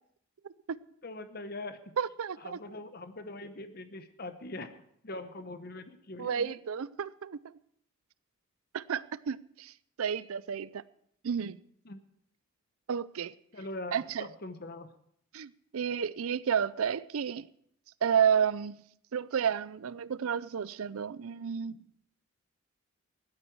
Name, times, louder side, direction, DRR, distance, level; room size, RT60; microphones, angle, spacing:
voice 1, 1.0-2.0 2.4-4.7 5.0-6.6 11.8-12.0 13.5-14.9, left 2 dB, 45° left, 0.9 m, -42 dB
voice 2, 2.0-2.6 6.2-7.4 8.7-9.7 10.0-10.8 11.2-11.6 12.9-13.3 13.9-14.3 15.3-17.5 18.0-18.8 19.1-21.7, right 7 dB, 75° right, 0.5 m, -31 dB
15.5 x 12.5 x 4.6 m
head